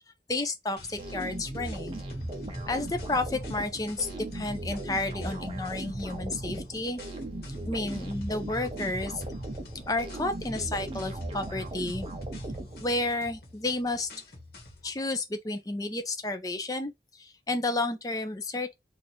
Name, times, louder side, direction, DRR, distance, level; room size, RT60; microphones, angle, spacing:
voice 1, 0.3-2.0 2.7-7.0 7.7-9.2 9.7-12.1 12.7-14.1 14.8-18.7, left 2 dB, 20° left, 0.5 m, -31 dB
sound 1, 0.8-15.0, left 2 dB, 60° left, 1.2 m, -50 dB
sound 2, 1.0-13.2, right 1 dB, 30° right, 0.7 m, -37 dB
2.9 x 2.5 x 4.2 m
head